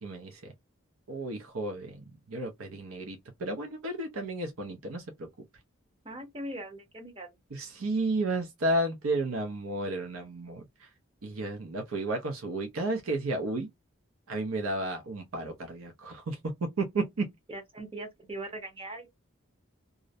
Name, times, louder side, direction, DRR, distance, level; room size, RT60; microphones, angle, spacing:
voice 1, 0.0-0.5 1.1-5.3 7.5-10.9 11.2-13.7 14.3-16.4 16.8-17.2, right 2 dB, 90° right, 0.5 m, -32 dB
voice 2, 6.0-7.4 17.5-19.1, right 1 dB, 25° right, 0.8 m, -40 dB
2.5 x 2.0 x 2.5 m
head